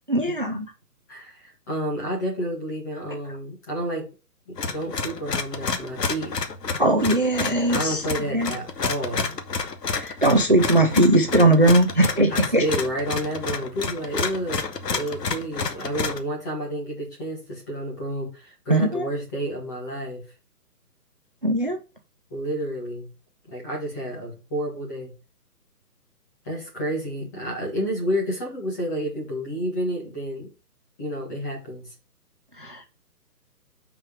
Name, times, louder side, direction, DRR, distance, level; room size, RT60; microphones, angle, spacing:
voice 1, 0.1-0.7 6.8-8.5 9.9-12.6 18.7-19.1 21.4-21.8 32.6-32.9, right 1 dB, 35° right, 6 dB, 0.5 m, -20 dB
voice 2, 1.1-4.1 4.5-6.4 7.7-9.4 12.3-20.2 22.3-23.1 23.5-25.1 26.4-30.5 31.0-31.9, right 1 dB, 10° left, -2 dB, 1.6 m, -30 dB
sound 1, 4.6-16.2, left 4 dB, 85° left, 1.5 m, -29 dB
6.1 x 4.8 x 6.3 m, 0.32 s
hypercardioid pair, 175°, 47 cm